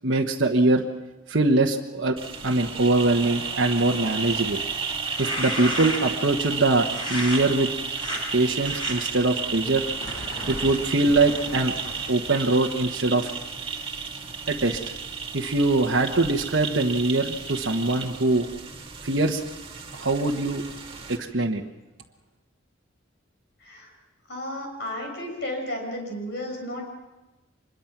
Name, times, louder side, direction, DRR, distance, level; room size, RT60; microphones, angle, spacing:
voice 1, 0.0-0.8 1.3-2.2 2.4-4.6 5.2-7.7 8.3-9.8 10.5-11.7 12.1-13.3 14.5-14.8 15.3-18.5 19.0-19.4 19.9-20.6 21.1-21.6, right 2 dB, 65° right, 0 dB, 1.2 m, -22 dB
sound 1, 2.2-21.2, right 5 dB, 25° right, 2.1 m, -33 dB
sound 2, 5.0-6.2 6.9-7.4 7.9-8.2 8.6-8.9 9.6-12.2, left 1 dB, 25° left, 5.3 m, -34 dB
voice 2, 24.3-26.9, left 1 dB, 55° left, 1 dB, 6.6 m, -33 dB
25.0 x 22.0 x 6.0 m, 1.1 s
head